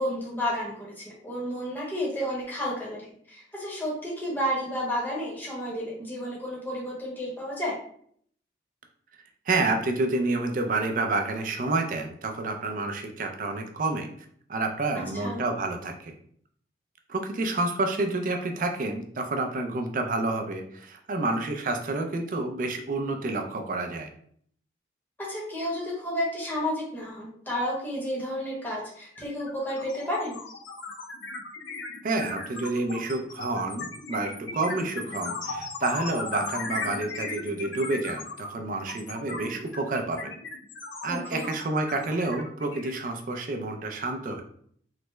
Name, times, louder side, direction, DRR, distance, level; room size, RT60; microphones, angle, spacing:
voice 1, 0.0-3.0 3.3-7.7 15.1-15.4 25.2-30.4 41.1-41.5, equal, 10° left, -5 dB, 0.8 m, -31 dB
voice 2, 9.5-14.1 14.5-16.2 17.1-24.1 32.0-40.3 41.0-44.4, right 2 dB, 45° right, 4 dB, 0.4 m, -29 dB
sound 1, 28.7-28.9 29.2-43.5, left 3 dB, 90° left, 0.5 m, -37 dB
3.3 x 2.0 x 3.1 m, 0.62 s
head